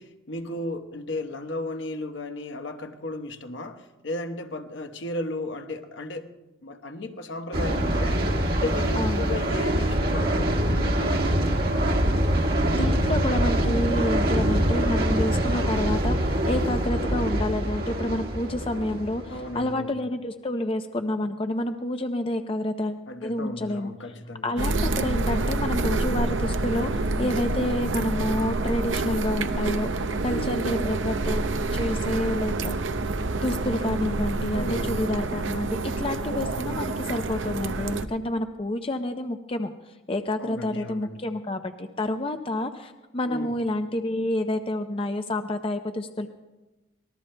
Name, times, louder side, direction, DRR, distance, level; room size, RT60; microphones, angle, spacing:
voice 1, 0.0-6.3 6.6-8.2 8.5-11.6 16.9-17.1 19.3-19.9 23.1-24.5 30.2-31.0 34.5-35.1 40.4-41.2 43.3-43.5, left 2 dB, 80° left, 1.1 m, -35 dB
sound 1, 7.5-19.7, right 1 dB, 55° right, 1.7 m, -24 dB
voice 2, 12.8-23.9 24.4-29.9 30.2-31.4 31.7-32.9 33.4-39.7 40.1-46.3, left 1 dB, 30° left, 0.5 m, -29 dB
sound 2, 24.6-38.1, right 2 dB, 85° right, 0.7 m, -27 dB
24.5 x 19.5 x 2.2 m
head